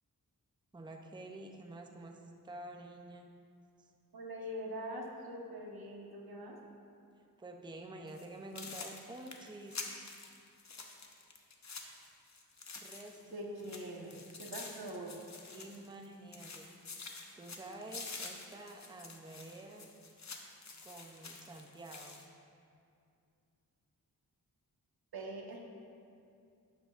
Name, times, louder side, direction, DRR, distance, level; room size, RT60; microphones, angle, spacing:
voice 1, 0.7-3.3 3.8-3.9 7.4-9.9 12.8-13.7 14.0-14.2 15.1-15.2 15.5-16.7 17.3-19.9 20.8-22.2, right 2 dB, 10° right, 2 dB, 0.6 m, -49 dB
voice 2, 4.1-6.6 13.3-15.2 25.1-25.6, right 1 dB, 80° right, -1 dB, 1.3 m, -43 dB
sound 1, 8.1-8.3 8.6-13.3 13.6-16.1 16.3-22.3, left 4 dB, 50° left, 0.9 m, -48 dB
12.0 x 8.9 x 2.5 m, 2.5 s
wide cardioid pair, 110°, 36 cm